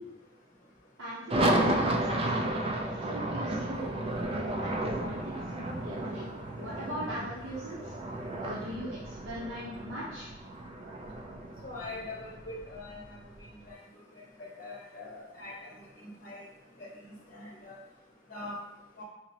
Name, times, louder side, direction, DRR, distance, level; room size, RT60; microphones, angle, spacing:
voice 1, 1.0-4.0 4.3-10.3, right 1 dB, 85° right, -8 dB, 0.8 m, -40 dB
sound 1, 1.3-13.5, right 1 dB, 30° right, 0.3 m, -33 dB
voice 2, 11.6-13.0 14.6-15.5 16.0-16.4 16.8-16.9 17.3-17.8 18.3-18.6 19.0-19.1, left 2 dB, 45° left, -5 dB, 0.8 m, -42 dB
5.8 x 2.0 x 2.8 m, 0.97 s
head